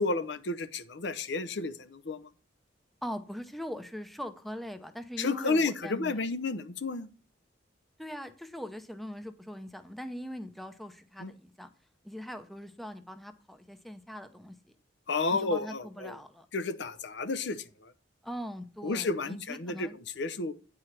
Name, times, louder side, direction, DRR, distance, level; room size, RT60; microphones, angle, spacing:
voice 1, 0.0-2.3 5.2-7.1 11.2-11.3 15.1-16.1 16.5-17.9 18.8-20.5, left 3 dB, 65° left, 0.7 m, -31 dB
voice 2, 3.0-6.2 8.0-11.7 12.0-14.5 15.3-16.5 18.2-20.0, equal, ahead, 0.7 m, -41 dB
9.7 x 4.9 x 5.9 m
head